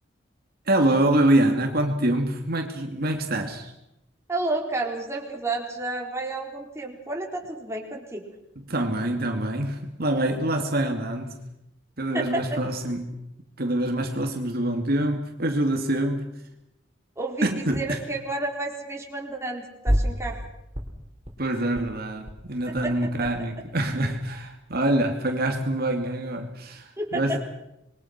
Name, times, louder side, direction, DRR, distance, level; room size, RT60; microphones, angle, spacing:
voice 1, 0.7-3.7 8.7-11.5 12.0-13.2 13.6-16.3 17.4-18.0 21.4-27.4, right 1 dB, 55° right, 2.5 m, -25 dB
voice 2, 4.3-8.2 12.1-12.6 17.2-20.4 22.8-22.9 27.0-27.4, right 2 dB, 15° right, 4.2 m, -30 dB
sound 1, 19.9-20.5 20.7-21.4 21.7-21.9 22.1-22.3 22.6-23.4 23.7-24.6, equal, 35° right, 4.7 m, -29 dB
27.5 x 22.5 x 6.0 m
head